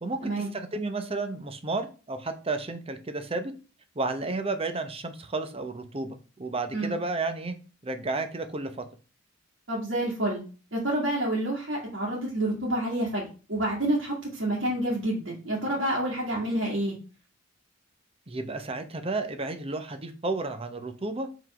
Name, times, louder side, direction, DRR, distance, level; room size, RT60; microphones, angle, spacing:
voice 1, 0.0-3.5 4.0-7.6 7.8-8.8 18.3-21.3, right 3 dB, 30° right, 8 dB, 0.8 m, -32 dB
voice 2, 9.7-10.4 10.7-17.0, right 1 dB, 70° right, -6 dB, 2.1 m, -28 dB
5.3 x 4.0 x 4.9 m, 0.36 s
head